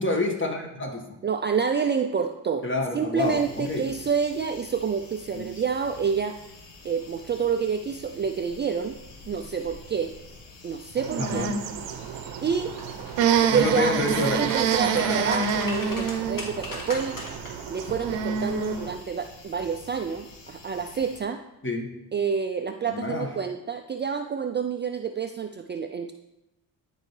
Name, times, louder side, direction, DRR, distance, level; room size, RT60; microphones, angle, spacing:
voice 1, 0.0-1.2 2.6-3.8 5.3-5.6 11.2-11.5 13.5-14.5 14.9-15.2 21.6-21.9 22.9-23.3, left 2 dB, 30° left, 2 dB, 1.7 m, -28 dB
voice 2, 1.2-2.7 2.9-6.4 6.8-9.0 9.3-10.2 10.6-11.5 12.4-12.7 13.4-14.0 14.3-17.2 17.7-21.4 22.1-26.1, right 6 dB, 25° right, 6 dB, 0.4 m, -28 dB
sound 1, 3.2-21.2, left 3 dB, 80° left, 1.4 m, -48 dB
sound 2, 11.0-19.0, right 6 dB, 85° right, 0.8 m, -27 dB
sound 3, 12.7-13.6 14.0-17.5 17.9-18.1, left 2 dB, 50° left, 2.1 m, -38 dB
12.0 x 4.6 x 3.3 m, 0.92 s
cardioid pair, 75°, 42 cm